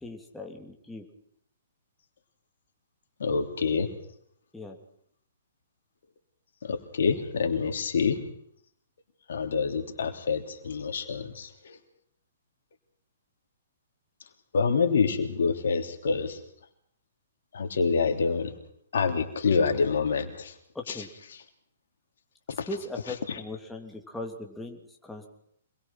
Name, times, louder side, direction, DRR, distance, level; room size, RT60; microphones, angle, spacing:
voice 1, 0.0-1.0 4.5-4.8 20.7-21.1 22.7-25.3, left 2 dB, 5° left, 1 dB, 3.3 m, -39 dB
voice 2, 3.2-3.9 6.6-8.2 9.3-11.8 14.5-16.4 17.5-18.5 18.9-20.5 20.9-21.0 21.3-21.4 22.6-22.7 23.1-23.4, left 5 dB, 70° left, 6 dB, 3.2 m, -27 dB
26.5 x 21.0 x 6.1 m, 0.69 s
hypercardioid pair, 125°, 0 cm